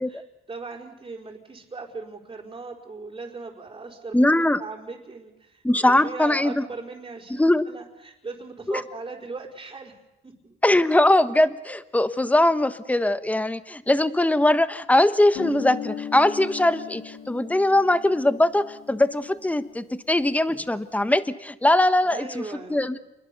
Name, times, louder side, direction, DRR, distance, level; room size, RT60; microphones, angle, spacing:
voice 1, 0.1-9.9 10.2-10.6 22.0-22.9, right 3 dB, 25° right, -5 dB, 4.6 m, -39 dB
voice 2, 4.1-4.6 5.6-6.6 7.3-7.7 8.7-8.8 10.6-23.0, left 1 dB, 5° left, 12 dB, 1.3 m, -21 dB
Guitar, 15.3-19.9, left 8 dB, 80° left, 3.8 m, -37 dB
29.0 x 21.5 x 6.9 m, 0.97 s
cardioid pair, 90°, 20 cm